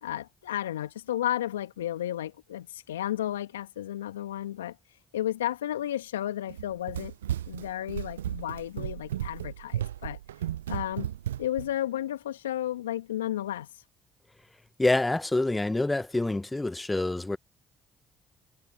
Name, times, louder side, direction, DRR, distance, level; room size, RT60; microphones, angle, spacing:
voice 1, 0.0-7.1 7.5-11.1 11.4-13.8, left 12 dB, 85° left, 1.4 m, -33 dB
Run, 6.5-11.7, right 11 dB, 85° right, 0.4 m, -34 dB
voice 2, 14.8-17.4, left 2 dB, 15° left, 0.7 m, -26 dB
figure-of-eight pair, 45°, 0 cm